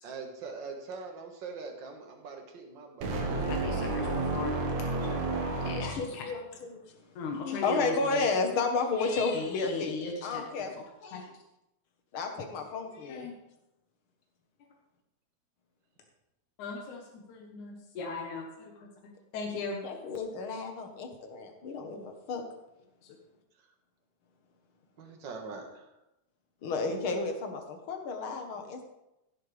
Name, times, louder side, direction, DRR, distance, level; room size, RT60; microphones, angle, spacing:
voice 1, 0.0-3.1 23.6-23.7 25.0-25.9, right 4 dB, 45° right, 2 dB, 2.0 m, -42 dB
sound 1, 3.0-6.3, right 2 dB, 70° right, 2.6 m, -31 dB
voice 2, 3.3-4.8 5.6-6.3 7.2-8.3 9.3-10.8 11.1-11.2 13.1-13.4 16.6-19.8 23.0-23.2, left 4 dB, 80° left, 1 dB, 2.7 m, -38 dB
voice 3, 5.1-5.4 5.7-6.8 7.4-10.7 11.0-11.2 12.1-13.3 19.8-22.4 26.6-28.8, left 4 dB, 55° left, 5 dB, 1.8 m, -32 dB
15.5 x 9.4 x 3.4 m, 0.90 s
omnidirectional pair, 3.4 m